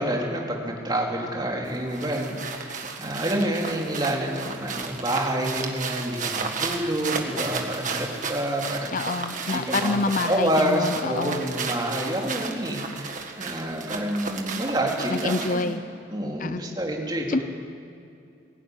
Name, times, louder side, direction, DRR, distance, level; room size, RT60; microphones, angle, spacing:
voice 1, 0.0-9.0 9.5-15.7 16.1-17.4, right 1 dB, 20° right, -1 dB, 3.2 m, -28 dB
sound 1, 1.7-15.8, right 5 dB, 40° right, 1.9 m, -33 dB
voice 2, 8.9-11.4 15.1-15.8 16.4-16.6 17.3-17.4, left 3 dB, 40° left, 12 dB, 0.5 m, -27 dB
21.0 x 17.0 x 9.7 m, 2.6 s
head